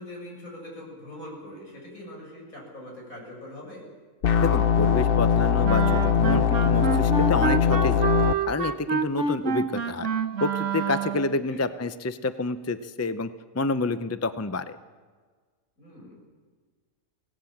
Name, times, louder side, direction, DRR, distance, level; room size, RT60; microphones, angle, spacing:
voice 1, 0.0-3.9 11.3-11.6 15.8-16.2, left 1 dB, 80° left, -2 dB, 7.4 m, -42 dB
sound 1, 4.2-8.3, left 7 dB, 50° left, 0.9 m, -21 dB
voice 2, 4.4-8.1 8.5-10.1 10.4-13.3 13.5-14.8, left 3 dB, 15° left, 12 dB, 0.5 m, -28 dB
Wind instrument woodwind instrument, 5.6-11.4, right 6 dB, 65° right, 1.5 m, -28 dB
25.0 x 18.0 x 7.3 m, 1.5 s
omnidirectional pair, 1.4 m